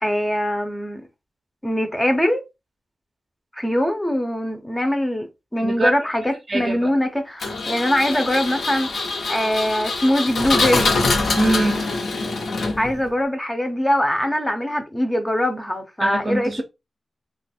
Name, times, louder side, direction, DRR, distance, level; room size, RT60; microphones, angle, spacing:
voice 1, 0.0-1.0 1.6-2.4 3.5-10.9 12.8-16.6, left 1 dB, 10° left, 0.6 m, -22 dB
voice 2, 6.5-6.9 11.4-11.9 16.0-16.6, right 2 dB, 35° right, 0.6 m, -23 dB
Engine, 7.4-13.1, left 3 dB, 80° left, 0.8 m, -24 dB
3.0 x 2.3 x 4.2 m
wide cardioid pair, 175°, 0 cm